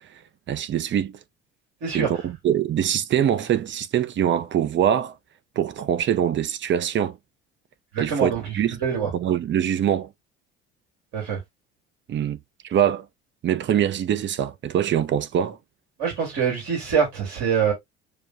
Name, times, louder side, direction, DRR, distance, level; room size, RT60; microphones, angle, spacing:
voice 1, 0.5-1.2 1.9-5.1 5.6-7.2 8.0-8.8 9.1-10.1 12.1-12.4 12.6-13.1 13.4-15.6, right 10 dB, 35° right, 0.6 m, -23 dB
voice 2, 7.9-8.5 8.8-9.1 11.1-11.4 16.0-17.7, right 6 dB, 60° right, 2.6 m, -24 dB
6.7 x 2.3 x 2.5 m
hypercardioid pair, 60°, 31 cm